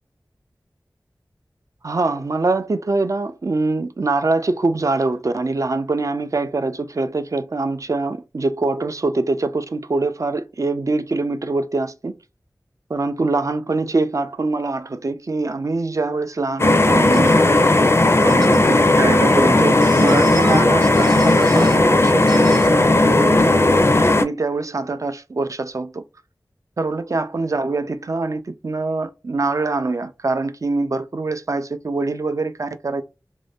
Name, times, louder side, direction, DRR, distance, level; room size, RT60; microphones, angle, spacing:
voice 1, 1.8-12.2 12.9-17.3 18.2-23.8 24.2-26.0 26.8-33.0, right 3 dB, 50° right, 0.4 m, -24 dB
sound 1, 16.6-24.2, left 2 dB, 35° left, 0.4 m, -15 dB
sound 2, 17.1-17.3 18.3-18.6 19.8-20.6 20.9-21.8 22.3-22.7, right 3 dB, 90° right, 1.0 m, -33 dB
2.5 x 2.1 x 3.3 m
wide cardioid pair, 45°, 7 cm